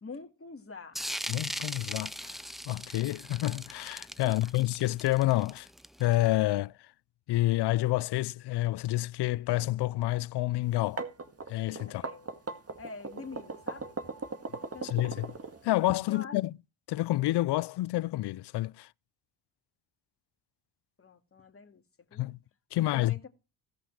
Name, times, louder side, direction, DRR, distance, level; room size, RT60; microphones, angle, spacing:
voice 1, 0.0-1.0 4.2-4.5 11.9-12.3 12.8-13.9 14.6-15.3 16.1-16.4 21.0-21.8 22.1-22.3 22.8-23.3, left 4 dB, 30° left, 2.4 m, -46 dB
sound 1, 1.0-6.3, equal, ahead, 0.5 m, -39 dB
voice 2, 1.3-2.4 2.7-5.7 6.0-6.7 7.3-11.1 11.5-12.0 14.8-15.3 15.6-16.5 16.9-18.9 22.1-22.4 22.7-23.2, left 16 dB, 60° left, 0.5 m, -28 dB
sound 2, 10.7-15.9, right 4 dB, 30° right, 1.9 m, -38 dB
17.0 x 5.8 x 4.8 m
supercardioid pair, 65°, 47 cm